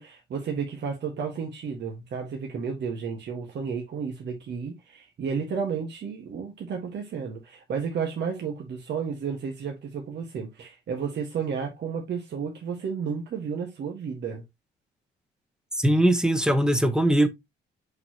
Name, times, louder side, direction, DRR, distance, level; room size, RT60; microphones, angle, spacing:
voice 1, 0.0-14.4, right 6 dB, 60° right, 1.7 m, -32 dB
voice 2, 15.8-17.3, right 1 dB, 5° right, 1.2 m, -21 dB
6.0 x 5.8 x 3.0 m
cardioid pair, 90°, 20 cm